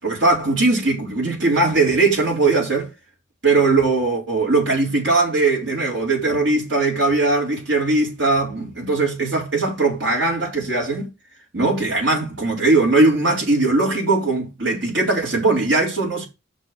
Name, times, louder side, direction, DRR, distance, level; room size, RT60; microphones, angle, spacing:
voice 1, 0.0-2.9 3.4-11.1 11.5-16.3, right 3 dB, 65° right, 4.7 m, -19 dB
6.7 x 5.7 x 6.2 m
head